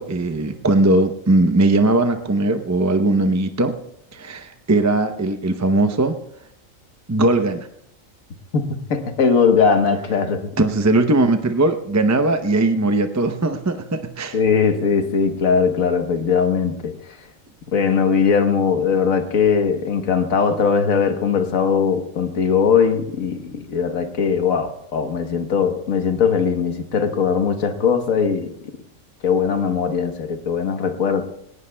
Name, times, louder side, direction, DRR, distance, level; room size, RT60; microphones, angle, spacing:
voice 1, 0.0-3.8 4.1-6.2 7.1-7.7 10.6-14.4, right 2 dB, 20° right, 0.4 m, -19 dB
voice 2, 8.5-10.5 14.3-17.2 17.7-28.5 29.2-31.2, left 6 dB, 90° left, 1.6 m, -20 dB
20.5 x 18.0 x 2.2 m
omnidirectional pair, 1.4 m